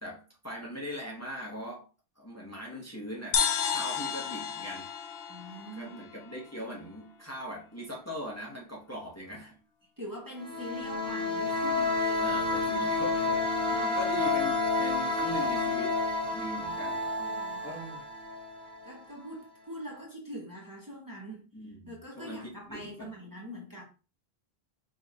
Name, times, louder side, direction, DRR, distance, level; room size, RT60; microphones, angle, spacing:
voice 1, 0.0-1.9 2.2-3.4 3.7-4.9 5.7-9.6 12.2-13.4 13.9-16.0 16.3-17.0 17.6-18.1 21.5-23.1, equal, 15° left, 0.9 m, -40 dB
sound 1, 3.3-6.8, left 7 dB, 75° left, 0.8 m, -32 dB
voice 2, 5.3-6.0 10.0-12.2 13.7-14.0 16.3-16.4 17.2-17.8 18.9-21.5 21.9-23.8, equal, 20° right, 0.9 m, -43 dB
sound 2, 10.4-19.0, left 3 dB, 70° right, 1.4 m, -30 dB
5.0 x 2.7 x 2.7 m
omnidirectional pair, 1.0 m